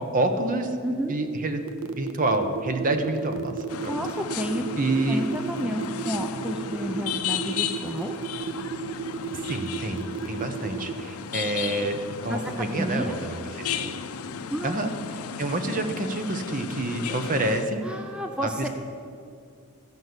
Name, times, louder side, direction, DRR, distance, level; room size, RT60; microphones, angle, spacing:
voice 1, 0.0-0.8 1.1-3.5 3.8-3.9 4.8-5.2 9.3-14.0 14.6-14.9 15.4-17.8 18.4-18.7, right 2 dB, 40° right, 7 dB, 0.9 m, -28 dB
voice 2, 0.8-1.1 3.9-4.7 5.1-8.1 12.3-13.2 14.5-14.7 17.8-18.7, equal, 5° right, 4 dB, 0.5 m, -31 dB
sound 1, 1.7-11.0, right 7 dB, 70° right, 0.7 m, -33 dB
sound 2, 3.7-17.6, left 7 dB, 85° left, 0.5 m, -35 dB
14.0 x 5.4 x 7.9 m, 2.4 s
head